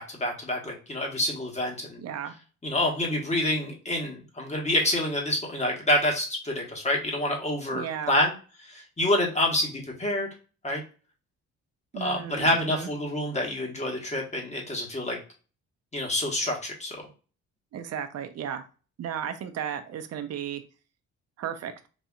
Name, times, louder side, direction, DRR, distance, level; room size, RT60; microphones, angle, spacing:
voice 1, 0.0-2.0 2.6-8.3 8.6-10.3 10.6-10.8 11.9-15.2 15.9-17.0, left 1 dB, 20° left, 0 dB, 1.4 m, -27 dB
voice 2, 2.0-2.3 7.7-8.1 11.9-12.9 17.7-18.7 19.0-20.6 21.4-21.9, right 9 dB, 55° right, 8 dB, 0.6 m, -34 dB
4.1 x 2.7 x 2.3 m, 0.35 s
cardioid pair, 90°, 30 cm